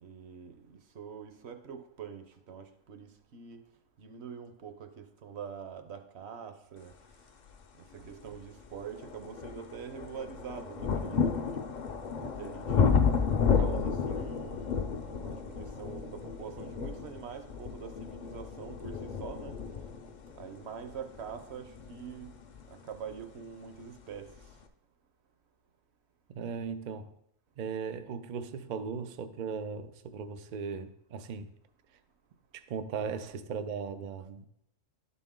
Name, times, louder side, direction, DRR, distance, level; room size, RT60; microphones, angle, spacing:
voice 1, 0.0-3.6 4.0-6.9 7.9-11.6 12.2-13.0 13.5-19.5 20.4-22.3 22.7-24.3, right 7 dB, 60° right, 0.9 m, -44 dB
sound 1, 7.9-8.0 8.6-23.3 24.2-24.3, left 6 dB, 55° left, 0.5 m, -32 dB
voice 2, 26.3-27.2 27.6-31.5 32.5-34.4, right 6 dB, 85° right, 0.4 m, -37 dB
11.5 x 4.2 x 3.7 m
omnidirectional pair, 1.4 m